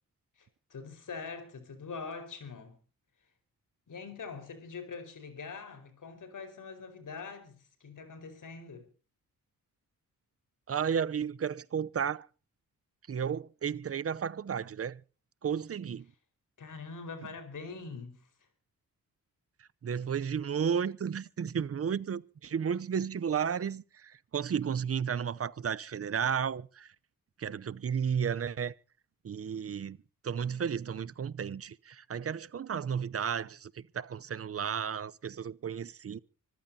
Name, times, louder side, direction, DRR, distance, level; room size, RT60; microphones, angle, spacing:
voice 1, 0.4-2.8 3.9-8.9 16.6-18.5, left 4 dB, 65° left, 4.8 m, -44 dB
voice 2, 10.7-12.3 13.1-15.0 15.4-16.0 19.8-26.9 27.4-28.7 29.2-30.0 30.2-36.2, right 7 dB, 45° right, 0.7 m, -33 dB
25.5 x 14.5 x 2.8 m
wide cardioid pair, 115°, 34 cm